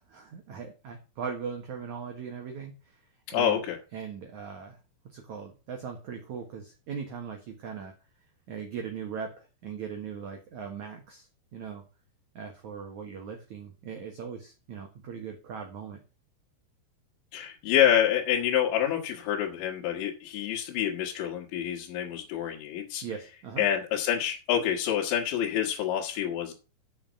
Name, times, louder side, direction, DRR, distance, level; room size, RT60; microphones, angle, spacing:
voice 1, 0.0-3.6 3.9-4.8 5.0-7.9 8.5-11.8 12.3-16.0 23.0-23.7, right 6 dB, 65° right, 2 dB, 1.9 m, -39 dB
voice 2, 3.3-3.8 17.3-23.0 23.6-26.5, left 10 dB, 75° left, 0 dB, 3.6 m, -27 dB
7.2 x 6.4 x 7.3 m, 0.32 s
omnidirectional pair, 5.3 m